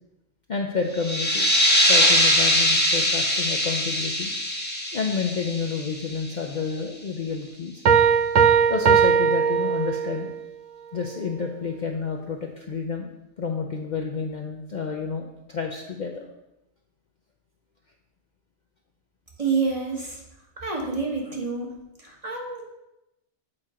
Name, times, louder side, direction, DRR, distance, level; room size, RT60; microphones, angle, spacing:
voice 1, 0.5-4.3 4.9-7.8 8.7-10.3 10.9-13.1 13.4-16.2, left 5 dB, 50° left, 2 dB, 0.6 m, -30 dB
sound 1, 0.9-6.3, equal, 10° left, 0.9 m, -22 dB
Piano, 7.9-10.3, right 6 dB, 65° right, 0.4 m, -19 dB
voice 2, 19.4-20.2 20.6-21.8 22.0-22.7, right 4 dB, 30° right, -2 dB, 1.4 m, -28 dB
7.9 x 4.3 x 4.9 m, 0.90 s
omnidirectional pair, 1.2 m